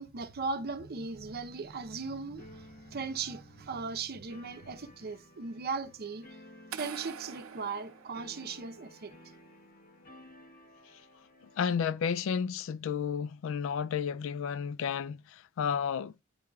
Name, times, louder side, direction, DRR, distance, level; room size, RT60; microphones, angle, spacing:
voice 1, 0.0-6.3 6.7-9.1, right 4 dB, 50° right, 0.7 m, -38 dB
sound 1, 2.4-12.5, left 1 dB, 45° left, 1.0 m, -55 dB
sound 2, 6.7-8.8, right 8 dB, 85° right, 0.6 m, -45 dB
voice 2, 11.6-16.1, left 7 dB, 65° left, 0.3 m, -32 dB
9.6 x 4.6 x 2.3 m
head